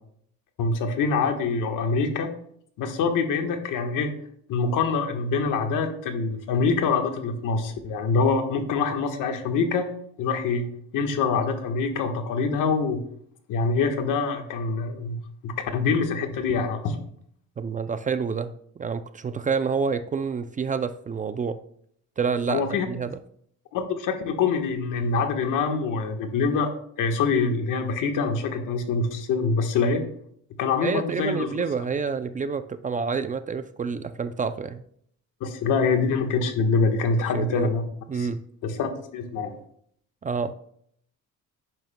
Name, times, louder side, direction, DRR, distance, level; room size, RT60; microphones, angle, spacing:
voice 1, 0.6-2.3 2.8-4.1 4.5-9.9 10.2-13.0 13.5-17.0 22.5-22.9 23.7-26.7 27.0-30.0 30.6-31.6 35.4-37.8 38.1-38.3 38.6-39.5, left 4 dB, 85° left, 5 dB, 1.4 m, -25 dB
voice 2, 17.6-21.6 22.2-23.2 30.8-34.8 37.3-37.7 38.1-38.4 40.2-40.6, right 5 dB, 25° right, 11 dB, 0.4 m, -28 dB
10.5 x 9.3 x 2.2 m, 0.66 s
cardioid pair, 125°, 31 cm